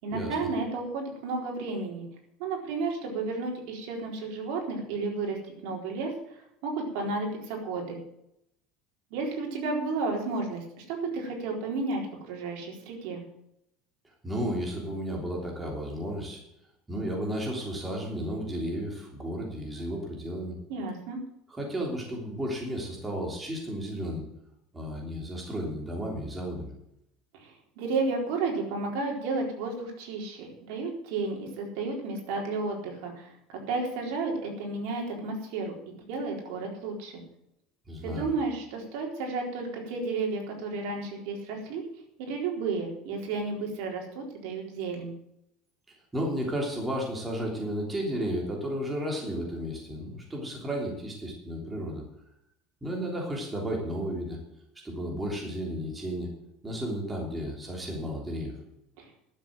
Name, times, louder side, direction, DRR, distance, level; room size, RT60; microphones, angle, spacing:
voice 1, 0.0-2.1 2.4-5.4 5.6-6.1 6.6-8.0 9.1-12.0 12.3-13.2 20.7-21.2 27.4-35.7 36.1-37.1 38.0-41.8 42.2-45.1 59.0-59.1, right 3 dB, 70° right, 0 dB, 4.1 m, -32 dB
voice 2, 14.2-16.4 16.9-20.5 21.5-24.2 24.7-26.7 37.9-38.3 46.1-52.0 52.8-54.4 54.8-56.3 56.6-58.5, equal, 10° right, -1 dB, 3.2 m, -33 dB
12.0 x 7.6 x 7.7 m, 0.77 s
cardioid pair, 150°, 0 cm